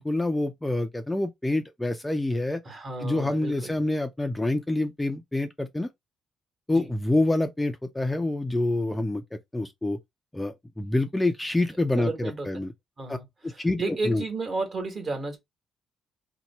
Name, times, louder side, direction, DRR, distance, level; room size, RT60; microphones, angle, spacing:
voice 1, 0.0-2.6 3.0-5.9 6.7-10.0 10.3-12.7 13.1-13.2 13.4-14.2, left 2 dB, 10° left, 0.5 m, -27 dB
voice 2, 2.6-3.7 6.7-6.9 12.0-12.5 13.0-15.4, right 3 dB, 40° right, 1.4 m, -32 dB
2.8 x 2.2 x 4.1 m
cardioid pair, 90°, 0 cm